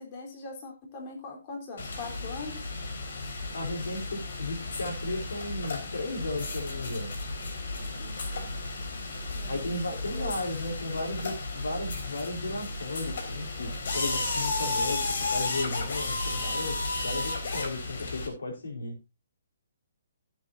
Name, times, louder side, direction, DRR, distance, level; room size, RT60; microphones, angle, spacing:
voice 1, 0.0-2.6 8.0-8.6 9.3-9.7 10.1-10.4, left 3 dB, 35° left, 1 dB, 3.8 m, -41 dB
sound 1, 1.8-18.3, left 2 dB, 60° left, 3.7 m, -33 dB
voice 2, 3.5-7.1 9.5-19.0, left 2 dB, 80° left, 2 dB, 4.3 m, -35 dB
16.0 x 8.1 x 2.7 m, 0.24 s
hypercardioid pair, 145°, 0 cm